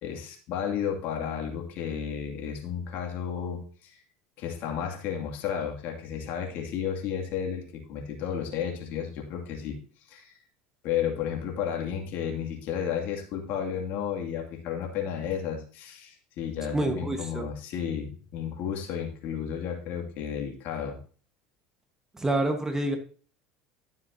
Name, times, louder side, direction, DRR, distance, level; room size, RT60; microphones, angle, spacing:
voice 1, 0.0-4.0 4.4-9.8 10.1-10.3 10.8-21.0, left 8 dB, 60° left, 2 dB, 2.5 m, -32 dB
voice 2, 16.7-17.5 22.1-23.0, right 2 dB, 15° right, 6 dB, 1.4 m, -27 dB
12.5 x 7.2 x 2.8 m, 0.40 s
supercardioid pair, 110°, 4 cm